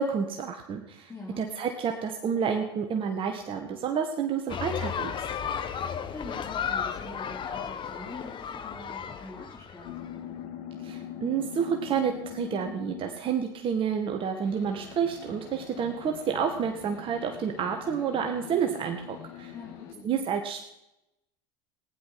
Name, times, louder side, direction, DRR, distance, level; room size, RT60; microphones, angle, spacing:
voice 1, 0.0-1.1 1.4-5.1 10.8-19.5 20.0-20.7, right 7 dB, 45° right, 4 dB, 1.9 m, -29 dB
voice 2, 1.1-1.4 6.1-9.9 19.5-20.3, left 2 dB, 20° left, -3 dB, 4.0 m, -44 dB
sound 1, 4.5-10.1, left 7 dB, 40° left, 1.5 m, -34 dB
sound 2, 9.8-13.4 14.4-19.9, left 9 dB, 65° left, 2.1 m, -43 dB
16.5 x 10.5 x 6.0 m, 0.88 s
hypercardioid pair, 80°, 13 cm